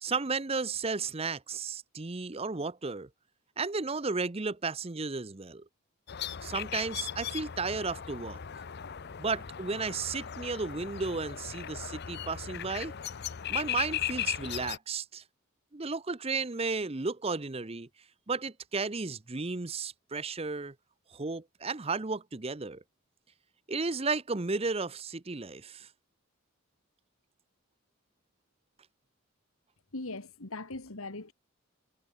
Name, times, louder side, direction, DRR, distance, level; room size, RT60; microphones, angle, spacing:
voice 1, 0.0-3.1 3.6-5.6 6.4-8.4 9.2-12.9 13.5-15.2 15.7-17.9 18.3-20.7 21.1-22.8 23.7-25.9, right 4 dB, 25° right, 0.8 m, -33 dB
sound 1, 6.1-14.8, left 9 dB, 50° left, 0.6 m, -37 dB
voice 2, 29.9-31.3, left 2 dB, 80° left, 2.3 m, -40 dB
head